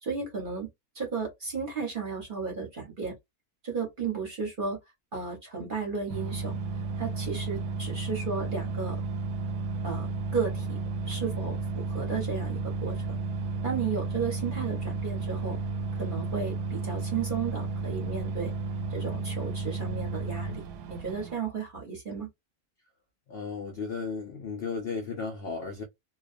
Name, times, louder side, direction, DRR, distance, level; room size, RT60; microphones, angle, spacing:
voice 1, 0.0-0.7 0.9-3.1 3.6-4.8 5.1-6.5 7.0-9.0 9.8-10.8 11.1-13.0 13.6-15.6 15.9-18.5 18.9-20.6 20.9-22.3, right 5 dB, 45° right, 0.8 m, -34 dB
sound 1, 6.1-21.3, right 3 dB, 85° right, 1.1 m, -33 dB
voice 2, 23.3-25.8, left 5 dB, 80° left, 0.5 m, -34 dB
2.4 x 2.2 x 2.4 m
omnidirectional pair, 1.6 m